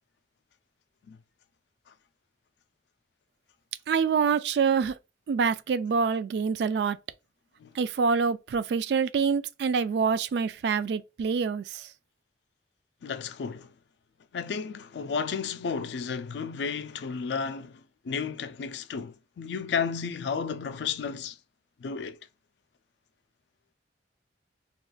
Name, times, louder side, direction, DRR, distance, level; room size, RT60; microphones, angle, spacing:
voice 1, 3.9-4.9 5.3-7.0 7.8-11.9, right 5 dB, 70° right, 0.3 m, -26 dB
voice 2, 13.0-13.7 14.3-21.4 21.8-22.2, left 6 dB, 75° left, 0.4 m, -33 dB
2.4 x 2.3 x 3.7 m
head